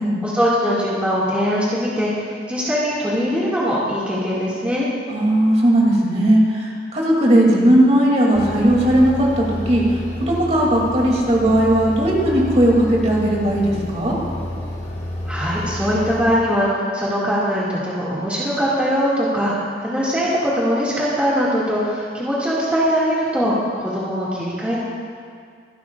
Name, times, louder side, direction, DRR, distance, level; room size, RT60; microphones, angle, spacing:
voice 1, 0.2-4.9 15.2-24.8, equal, 5° right, -8 dB, 2.1 m, -21 dB
voice 2, 5.1-14.2, right 1 dB, 35° right, -3 dB, 2.7 m, -17 dB
sound 1, 8.4-16.4, left 1 dB, 35° left, 2.0 m, -30 dB
25.5 x 11.5 x 2.4 m, 2.2 s
head